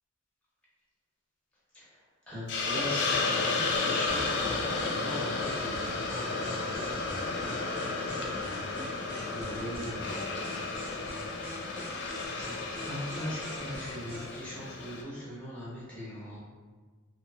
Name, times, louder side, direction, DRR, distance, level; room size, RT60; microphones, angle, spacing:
voice 1, 2.3-5.9 9.1-10.7 11.7-12.5 12.8-16.4, equal, 5° left, -7 dB, 0.6 m, -40 dB
Hiss, 2.5-15.0, left 3 dB, 55° left, 0.3 m, -33 dB
sound 1, 3.7-14.4, equal, 45° right, 0.9 m, -44 dB
2.5 x 2.4 x 2.2 m, 1.4 s
head